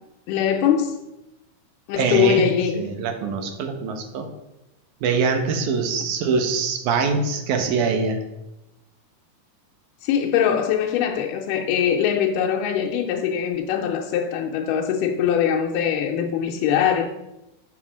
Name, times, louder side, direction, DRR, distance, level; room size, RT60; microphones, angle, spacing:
voice 1, 0.3-1.0 1.9-2.9 10.0-17.1, left 8 dB, 90° left, 2.2 m, -22 dB
voice 2, 2.0-4.3 5.0-8.2, right 5 dB, 75° right, 2.3 m, -23 dB
7.2 x 4.2 x 6.1 m
omnidirectional pair, 3.7 m